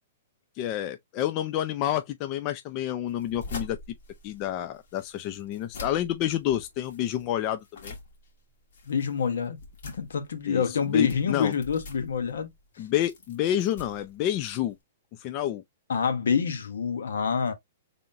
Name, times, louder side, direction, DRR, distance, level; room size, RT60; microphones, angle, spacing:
voice 1, 0.6-3.8 4.2-8.0 10.5-11.5 12.8-14.8 15.2-15.6, left 12 dB, 35° left, 0.6 m, -29 dB
sound 1, 3.1-14.8, left 3 dB, 70° left, 2.0 m, -45 dB
voice 2, 8.9-9.6 9.9-12.5 15.9-17.5, left 6 dB, 85° left, 1.2 m, -26 dB
3.8 x 3.6 x 2.6 m
hypercardioid pair, 140°, 0 cm